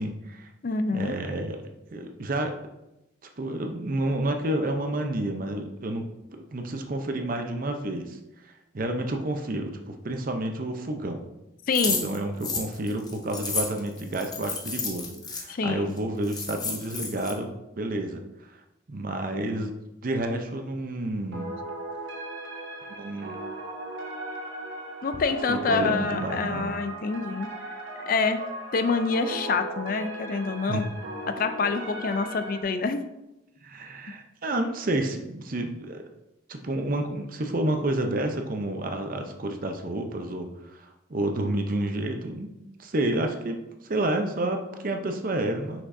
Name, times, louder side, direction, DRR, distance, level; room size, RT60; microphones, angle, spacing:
voice 1, 0.0-0.5 0.9-1.6 1.9-2.6 3.4-6.1 6.3-8.2 8.4-11.3 11.9-18.6 18.9-19.7 20.0-21.5 22.9-23.4 25.5-26.7 30.7-30.9 33.6-36.0 36.5-42.5 42.8-45.8, right 1 dB, 45° right, 5 dB, 0.6 m, -30 dB
voice 2, 0.6-1.1 11.7-12.1 15.5-15.9 25.0-27.5 28.1-28.4 28.7-30.9 31.4-33.0, left 4 dB, 45° left, 9 dB, 0.4 m, -26 dB
sound 1, 11.7-15.4 16.0-16.1 16.2-17.3, left 4 dB, 20° left, 0.8 m, -31 dB
sound 2, 21.3-32.6, right 1 dB, 80° right, 1.2 m, -37 dB
6.2 x 6.0 x 2.6 m, 0.93 s
head